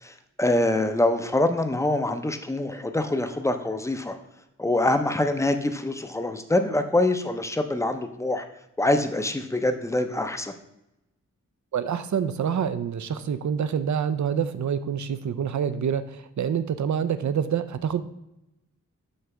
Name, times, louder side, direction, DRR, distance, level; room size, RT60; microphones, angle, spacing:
voice 1, 0.0-4.2 4.6-8.4 8.8-10.5, left 2 dB, 10° left, 7 dB, 0.6 m, -25 dB
voice 2, 11.7-18.0, right 7 dB, 65° right, 12 dB, 0.5 m, -27 dB
6.5 x 3.3 x 6.0 m, 0.87 s
wide cardioid pair, 85°, 31 cm